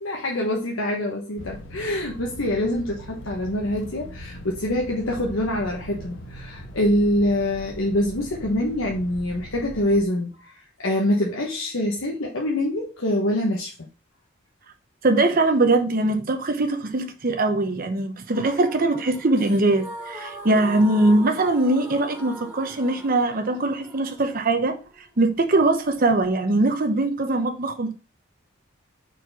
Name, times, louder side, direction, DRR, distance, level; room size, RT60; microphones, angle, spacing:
voice 1, 0.0-13.9, left 1 dB, 85° left, 1.2 m, -25 dB
sound 1, 1.4-10.0, equal, 70° left, 0.9 m, -40 dB
voice 2, 15.0-24.8 25.2-27.9, right 2 dB, 45° right, 0.8 m, -21 dB
sound 2, 18.3-26.3, equal, 5° right, 2.1 m, -41 dB
4.7 x 4.3 x 5.6 m
head